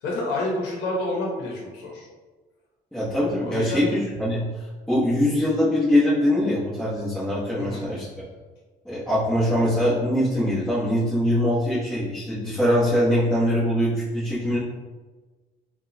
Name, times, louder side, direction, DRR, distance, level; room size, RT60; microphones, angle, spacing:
voice 1, 0.0-2.1 3.4-3.9 7.6-7.9, left 1 dB, 90° left, -2 dB, 0.9 m, -29 dB
voice 2, 2.9-8.0 8.8-14.6, left 1 dB, 5° left, -13 dB, 1.2 m, -23 dB
4.0 x 2.4 x 2.7 m, 1.3 s
cardioid pair, 110°, 17 cm